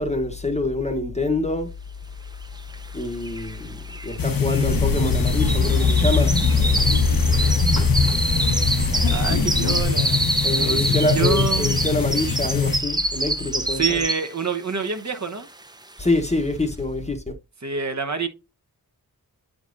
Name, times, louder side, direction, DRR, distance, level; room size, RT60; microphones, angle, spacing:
voice 1, 0.0-1.7 2.9-7.1 10.4-14.0 16.0-17.3, left 2 dB, 20° left, 0.9 m, -26 dB
sound 1, 2.7-2.8 3.0-14.5 14.9-15.2 15.6-15.7, right 2 dB, 10° right, 0.5 m, -27 dB
sound 2, 4.2-12.8, left 6 dB, 65° left, 0.8 m, -23 dB
sound 3, 4.7-9.8, left 2 dB, 85° left, 1.2 m, -25 dB
voice 2, 9.1-10.2 10.5-11.8 13.7-15.5 17.6-18.3, right 6 dB, 50° right, 0.9 m, -27 dB
8.3 x 5.1 x 2.5 m
wide cardioid pair, 65°, 37 cm